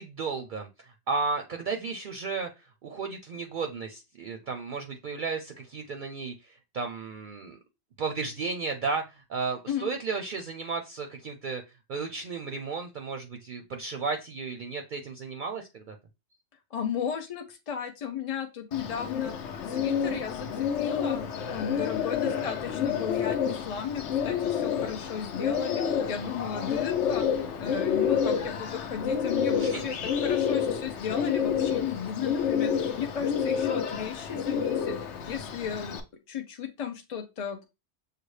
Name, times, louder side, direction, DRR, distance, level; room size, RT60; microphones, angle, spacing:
voice 1, 0.0-7.6 8.0-15.9 26.2-26.5 29.5-29.9, right 4 dB, 55° right, 5 dB, 0.6 m, -34 dB
voice 2, 16.7-27.2 27.6-35.0 35.3-37.6, left 7 dB, 50° left, 5 dB, 0.4 m, -35 dB
Bird, 18.7-36.0, left 7 dB, 90° left, 0.9 m, -29 dB
6.6 x 2.3 x 3.1 m, 0.26 s
omnidirectional pair, 1.2 m